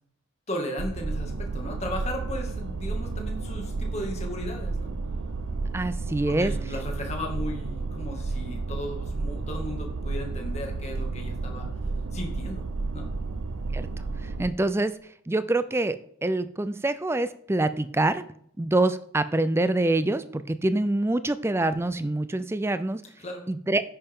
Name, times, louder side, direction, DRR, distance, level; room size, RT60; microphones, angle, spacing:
voice 1, 0.5-4.9 6.3-11.7 12.1-12.6 12.9-13.1 23.2-23.4, left 1 dB, 30° left, 1 dB, 2.1 m, -35 dB
sound 1, 0.8-14.5, right 3 dB, 85° right, 0.7 m, -32 dB
voice 2, 5.7-6.5 13.7-13.9 14.2-14.9 15.3-18.2 18.6-23.0 23.5-23.8, right 2 dB, 10° right, 13 dB, 0.4 m, -25 dB
10.0 x 8.9 x 3.7 m, 0.67 s
head